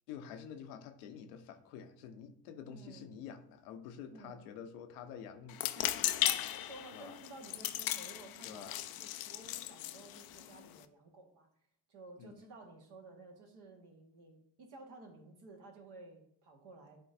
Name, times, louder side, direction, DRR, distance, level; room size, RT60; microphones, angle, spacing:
voice 1, 0.1-5.7 6.9-7.2 8.4-8.8 12.2-12.4, left 8 dB, 70° left, 0.9 m, -48 dB
voice 2, 2.7-3.1 4.1-4.4 5.8-11.5 11.9-17.0, right 3 dB, 55° right, 1.7 m, -54 dB
sound 1, 5.5-10.8, left 13 dB, 50° left, 0.5 m, -37 dB
11.5 x 3.8 x 2.7 m
figure-of-eight pair, 50°, 48 cm